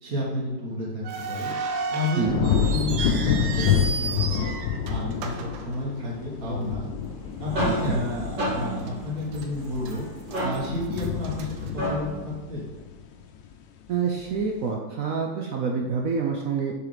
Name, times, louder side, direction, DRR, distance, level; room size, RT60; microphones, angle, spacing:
voice 1, 0.0-1.5 1.9-4.5 4.9-6.9 7.4-10.1 10.4-11.5 11.7-12.6, left 1 dB, 50° right, -6 dB, 1.6 m, -31 dB
sound 1, 1.0-6.4 6.7-6.8 7.5-7.7 8.2-8.3 8.9-9.5 9.8-12.3, right 4 dB, 85° right, 1.5 m, -34 dB
sound 2, 2.2-13.5 14.0-14.4, left 7 dB, 80° left, 1.3 m, -28 dB
sound 3, 7.1-12.3, right 1 dB, 30° right, 1.2 m, -32 dB
voice 2, 7.6-8.0 13.9-16.7, right 5 dB, 65° right, 1 dB, 0.9 m, -27 dB
7.1 x 4.1 x 5.0 m, 1.2 s
omnidirectional pair, 2.0 m